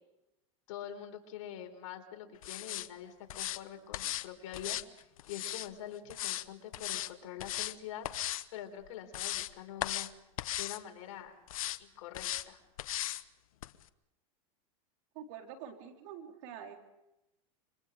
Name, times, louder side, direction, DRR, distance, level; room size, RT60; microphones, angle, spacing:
voice 1, 0.7-4.8 5.3-8.1 8.5-10.1 10.6-11.4 11.8-12.6, left 10 dB, 70° left, 5 dB, 3.9 m, -45 dB
sound 1, 2.4-2.9 3.3-3.6 3.9-4.3 4.5-5.7 6.1-6.5 6.7-7.1 7.4-7.8 8.0-8.4 8.9-9.5 9.8-10.1 10.4-10.8 11.5-11.8 12.1-12.5 12.8-13.2 13.6-13.7, left 14 dB, 85° left, 0.9 m, -37 dB
voice 2, 15.1-16.8, right 8 dB, 65° right, 4 dB, 3.9 m, -46 dB
27.5 x 25.0 x 5.2 m, 0.93 s
supercardioid pair, 120°, 17 cm